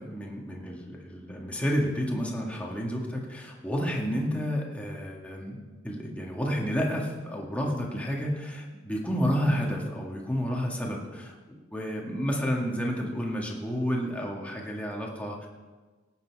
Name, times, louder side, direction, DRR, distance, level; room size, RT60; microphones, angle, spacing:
voice 1, 0.0-5.6 5.8-11.4 11.7-15.5, equal, 5° left, -2 dB, 1.9 m, -30 dB
18.5 x 8.2 x 4.7 m, 1.3 s
head